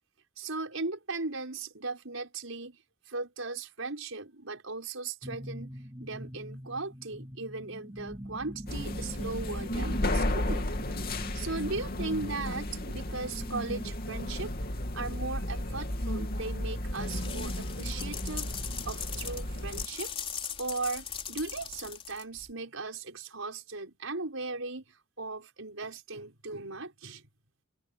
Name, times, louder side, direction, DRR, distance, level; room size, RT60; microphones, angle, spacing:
voice 1, 0.4-2.8 3.1-10.7 11.3-14.5 14.9-18.5 18.8-20.1 20.6-27.2, right 3 dB, 80° right, 5.7 m, -37 dB
sound 1, 5.2-13.9, equal, 20° right, 7.3 m, -44 dB
sound 2, 8.7-19.9, left 1 dB, 50° left, 2.8 m, -33 dB
sound 3, 16.9-22.5, left 7 dB, 30° left, 3.8 m, -40 dB
open air
head